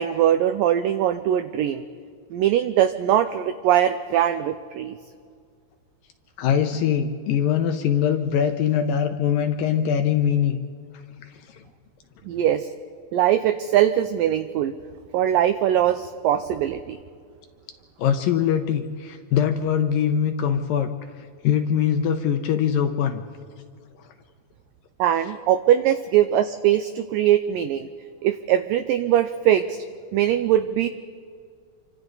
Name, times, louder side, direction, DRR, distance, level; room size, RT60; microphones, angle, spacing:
voice 1, 0.0-1.8 2.3-5.0 12.3-12.7 13.1-14.7 15.1-17.0 25.0-27.9 28.2-29.8 30.1-30.9, right 11 dB, 90° right, 10 dB, 1.9 m, -21 dB
voice 2, 6.4-10.6 11.5-11.6 18.0-20.9 21.4-23.2, left 8 dB, 75° left, 6 dB, 2.2 m, -22 dB
28.0 x 25.5 x 4.0 m, 2.1 s
omnidirectional pair, 4.7 m